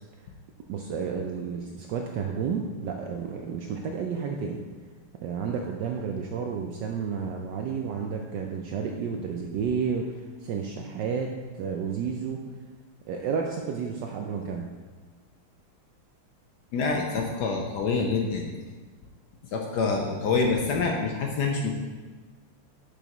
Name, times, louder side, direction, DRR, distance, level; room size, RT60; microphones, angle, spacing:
voice 1, 0.7-4.6 5.2-10.0 10.4-11.3 11.5-12.4 13.1-14.7, right 6 dB, 80° right, 2 dB, 1.0 m, -31 dB
voice 2, 16.7-18.6 19.5-21.7, left 4 dB, 70° left, 1 dB, 1.0 m, -26 dB
7.0 x 6.4 x 2.9 m, 1.4 s
omnidirectional pair, 2.4 m